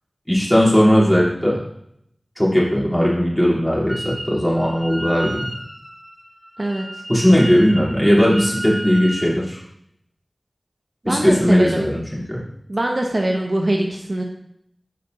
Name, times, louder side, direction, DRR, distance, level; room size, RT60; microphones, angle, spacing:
voice 1, 0.3-1.6 2.4-5.5 7.1-9.6 11.0-12.0 12.3-12.4, equal, 5° left, -6 dB, 3.2 m, -17 dB
Wind instrument woodwind instrument, 3.9-4.3 4.5-9.4, equal, 25° right, 1.8 m, -33 dB
voice 2, 11.0-11.9 12.7-14.2, right 1 dB, 50° right, 1 dB, 0.8 m, -22 dB
12.5 x 5.2 x 2.7 m, 0.73 s
wide cardioid pair, 50°, 0 cm